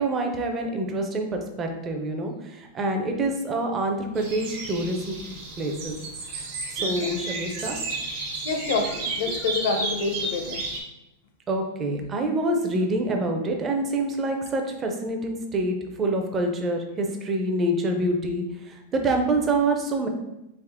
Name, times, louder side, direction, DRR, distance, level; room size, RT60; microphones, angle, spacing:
voice 1, 0.0-5.1 5.6-6.0 6.7-7.8 9.3-9.4 11.5-20.1, right 2 dB, 15° right, 3 dB, 0.4 m, -26 dB
sound 1, 4.1-10.8, right 3 dB, 45° right, 0.9 m, -32 dB
voice 2, 6.8-7.1 8.4-10.6, left 4 dB, 65° left, 4 dB, 0.6 m, -27 dB
3.5 x 2.8 x 3.4 m, 0.92 s
supercardioid pair, 170°, 0 cm